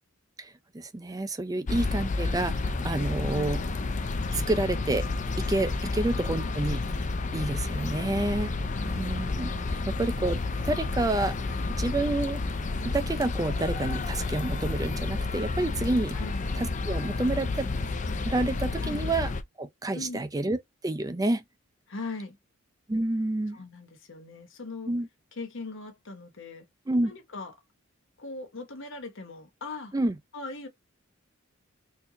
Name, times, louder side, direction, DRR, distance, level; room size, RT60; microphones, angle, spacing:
voice 1, 0.4-3.6 4.3-5.1 5.4-6.8 7.3-8.5 8.9-9.5 9.9-11.3 11.8-12.4 12.8-16.2 16.6-17.7 18.2-19.3 19.6-20.6 20.8-21.4 22.9-23.6 24.9-25.1 26.9-27.1 29.9-30.2, right 2 dB, 15° right, 0.4 m, -29 dB
sound 1, 1.7-19.4, left 3 dB, 35° left, 0.5 m, -30 dB
voice 2, 3.2-3.6 5.8-5.9 8.7-9.1 11.5-11.7 16.1-16.4 18.8-19.1 19.9-20.3 21.9-22.4 23.5-24.9 25.3-26.6 27.0-27.5 28.2-29.9 30.3-30.7, left 3 dB, 60° left, 1.0 m, -40 dB
4.4 x 2.7 x 2.8 m
head